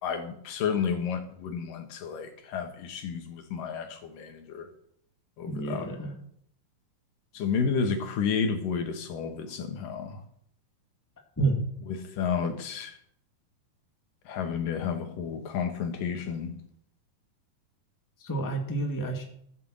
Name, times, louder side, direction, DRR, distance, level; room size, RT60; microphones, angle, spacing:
voice 1, 0.0-4.7 5.4-5.9 7.3-10.2 11.9-13.0 14.3-16.6, left 6 dB, 70° left, 2.9 m, -31 dB
voice 2, 5.5-6.1 11.4-11.6 18.2-19.2, right 2 dB, 5° left, 1.5 m, -29 dB
15.5 x 7.7 x 7.8 m
omnidirectional pair, 4.2 m